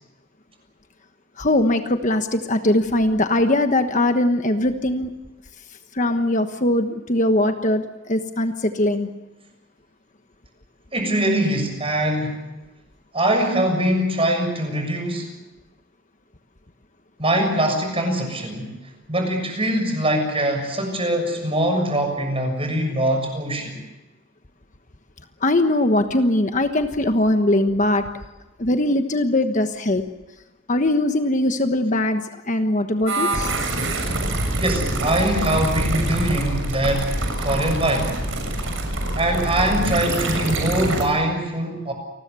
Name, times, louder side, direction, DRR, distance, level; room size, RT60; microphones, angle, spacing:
voice 1, 1.4-5.1 5.9-9.1 25.4-28.0 28.6-30.0 30.7-33.5, left 1 dB, 40° left, 7 dB, 1.3 m, -21 dB
voice 2, 10.9-12.4 13.1-15.3 17.2-18.7 19.1-23.8 34.6-38.2 39.1-41.9, right 1 dB, 30° right, 4 dB, 6.8 m, -22 dB
sound 1, 33.1-41.1, right 1 dB, 70° right, 6.8 m, -25 dB
29.0 x 20.5 x 7.0 m, 1.1 s
head